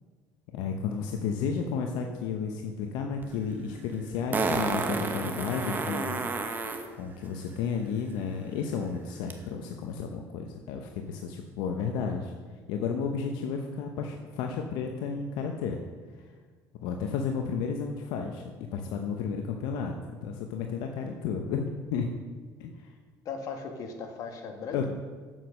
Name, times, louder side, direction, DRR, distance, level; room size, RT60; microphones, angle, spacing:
voice 1, 0.5-6.2 7.0-12.3 12.7-15.8 16.8-18.4 18.7-22.1 22.6-22.9 24.7-24.9, left 6 dB, 80° left, 3 dB, 0.9 m, -32 dB
Fart, 3.2-3.3 4.3-6.9 9.3-9.4, right 4 dB, 25° right, 1.1 m, -30 dB
voice 2, 23.2-24.9, left 5 dB, 55° left, 3 dB, 1.8 m, -37 dB
8.2 x 7.5 x 6.3 m, 1.5 s
cardioid pair, 120°, 7 cm